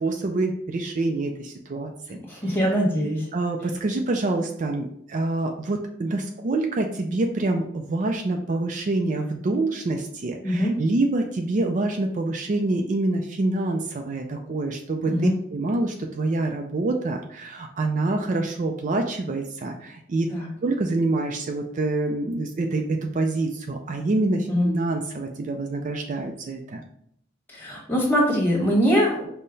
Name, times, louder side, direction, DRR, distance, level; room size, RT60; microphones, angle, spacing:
voice 1, 0.0-2.2 2.5-2.6 3.3-20.3 20.6-26.8, right 2 dB, 40° right, 4 dB, 0.4 m, -26 dB
voice 2, 2.3-3.2 10.4-10.7 15.1-15.3 20.3-20.5 24.5-24.7 27.5-29.2, equal, 10° left, -3 dB, 1.3 m, -22 dB
5.5 x 2.1 x 3.9 m, 0.70 s
head